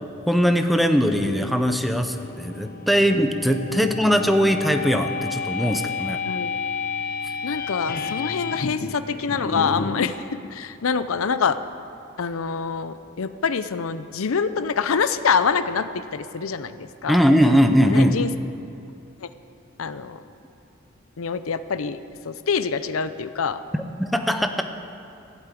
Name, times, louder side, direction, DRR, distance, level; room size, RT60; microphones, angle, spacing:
voice 1, 0.3-6.2 17.1-18.2 23.7-24.6, equal, ahead, 6 dB, 0.7 m, -20 dB
sound 1, 1.0-10.2, left 5 dB, 45° left, 0.7 m, -31 dB
voice 2, 7.4-10.2 10.5-11.6 12.2-17.2 17.9-18.3 19.2-19.3 19.8-20.2 21.2-23.6, left 5 dB, 85° left, 13 dB, 0.6 m, -25 dB
14.0 x 8.3 x 8.4 m, 2.7 s
head